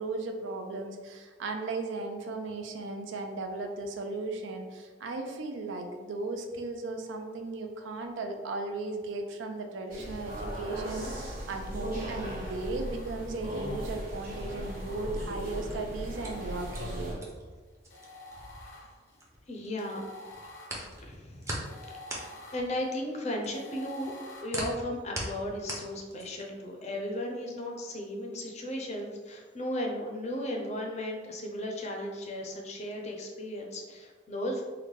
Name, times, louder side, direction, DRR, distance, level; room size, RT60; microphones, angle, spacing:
voice 1, 0.0-17.2, right 3 dB, 80° right, 4 dB, 0.4 m, -36 dB
sound 1, 9.9-17.1, equal, 50° right, 1.2 m, -37 dB
sound 2, 10.4-11.7 12.3-13.6 14.1-15.5 16.0-17.3 17.9-24.5, left 1 dB, 80° left, 0.6 m, -50 dB
sound 3, 15.7-19.7 20.0-26.6, right 1 dB, 15° right, 0.6 m, -41 dB
voice 2, 19.5-20.0 21.0-21.6 21.9-22.2 22.5-24.1 24.4-34.6, left 1 dB, 35° left, 1 dB, 0.5 m, -35 dB
3.7 x 2.2 x 3.2 m, 1.4 s
head